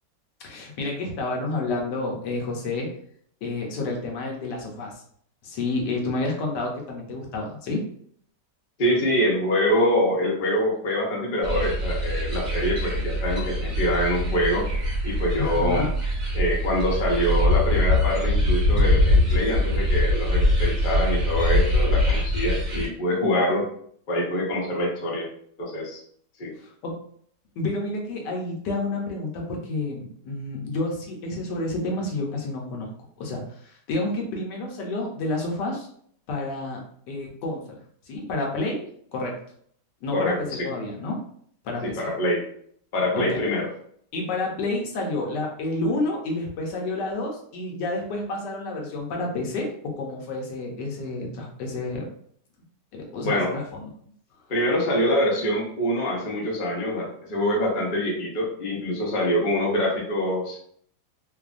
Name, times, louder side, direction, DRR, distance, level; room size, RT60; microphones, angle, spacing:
voice 1, 0.4-2.9 3.4-5.0 5.4-7.8 15.4-15.9 26.6-27.0 27.6-32.9 33.2-35.9 36.3-36.8 37.1-37.8 38.0-39.4 40.0-41.2 41.6-42.1 43.1-43.4 44.1-52.1 52.9-53.8, left 2 dB, 80° left, 0 dB, 1.3 m, -29 dB
voice 2, 8.8-14.7 15.0-15.9 16.3-23.7 24.1-25.3 25.6-26.0 26.4-26.5 40.1-40.7 41.8-42.4 42.9-43.7 53.2-53.5 54.5-60.6, equal, 55° left, -3 dB, 0.5 m, -25 dB
sound 1, 11.4-22.8, left 1 dB, 30° right, 0.9 m, -23 dB
3.1 x 2.1 x 2.4 m, 0.63 s
omnidirectional pair, 1.9 m